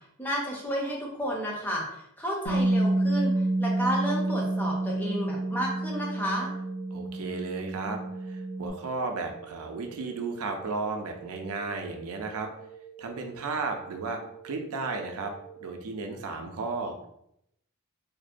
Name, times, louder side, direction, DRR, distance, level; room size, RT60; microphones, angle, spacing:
voice 1, 0.2-6.5, equal, 10° left, -2 dB, 0.5 m, -32 dB
Bass guitar, 2.5-8.7, right 2 dB, 90° left, 0.6 m, -28 dB
sound 1, 3.1-15.7, right 8 dB, 70° left, 1.0 m, -48 dB
voice 2, 6.9-12.5 13.0-14.2 14.4-15.3 15.6-16.9, right 3 dB, 75° right, 4 dB, 0.4 m, -34 dB
2.5 x 2.1 x 2.4 m, 0.77 s
head